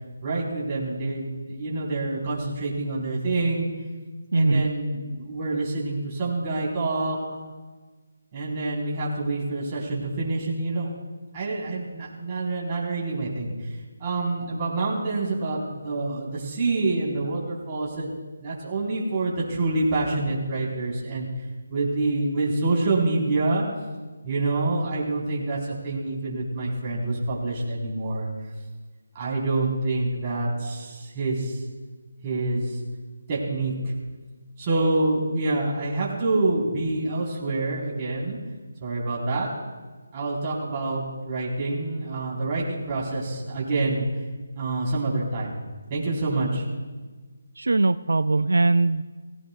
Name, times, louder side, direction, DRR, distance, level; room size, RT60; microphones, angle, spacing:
voice 1, 0.2-3.7 4.3-7.2 8.3-10.9 11.3-13.5 14.0-18.1 18.4-21.3 21.7-23.6 24.2-28.3 29.1-31.6 32.2-32.8 33.3-33.9 34.6-38.4 38.8-39.5 40.1-44.0 44.6-45.6 45.9-46.6, right 2 dB, 25° right, -5 dB, 3.9 m, -27 dB
voice 2, 4.3-4.7 47.6-49.1, right 3 dB, 85° right, 12 dB, 0.4 m, -21 dB
18.0 x 17.0 x 2.3 m, 1.3 s
figure-of-eight pair, 165°, 0 cm